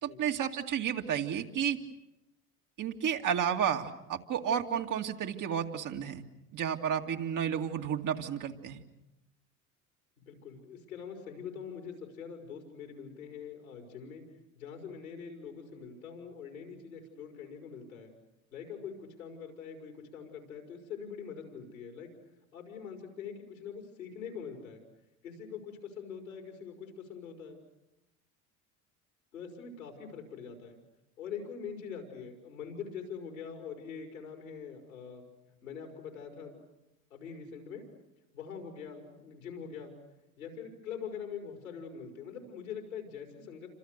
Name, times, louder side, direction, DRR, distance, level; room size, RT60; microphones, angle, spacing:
voice 1, 0.0-1.8 2.8-6.2 6.5-8.8, right 8 dB, 45° right, 4 dB, 2.4 m, -32 dB
voice 2, 10.3-14.2 14.6-18.1 18.5-22.1 22.5-24.8 25.2-27.6 29.3-30.8 31.2-35.2 35.6-36.6 37.1-37.8 38.3-39.9 40.4-43.7, left 6 dB, 90° left, 3 dB, 5.4 m, -43 dB
29.0 x 26.0 x 6.7 m, 0.96 s
hypercardioid pair, 70°, 41 cm